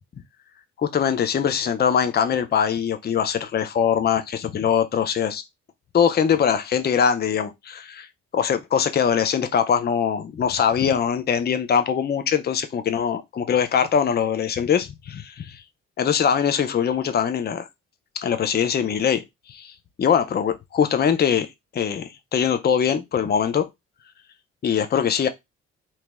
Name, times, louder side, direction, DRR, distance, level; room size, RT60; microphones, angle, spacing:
voice 1, 0.8-5.4 5.9-8.1 8.3-15.6 16.0-17.6 18.2-19.2 19.5-19.7 20.0-21.5 21.7-23.7 24.6-25.3, left 7 dB, 30° left, 0.6 m, -22 dB
2.9 x 2.9 x 3.4 m
hypercardioid pair, 45°, 36 cm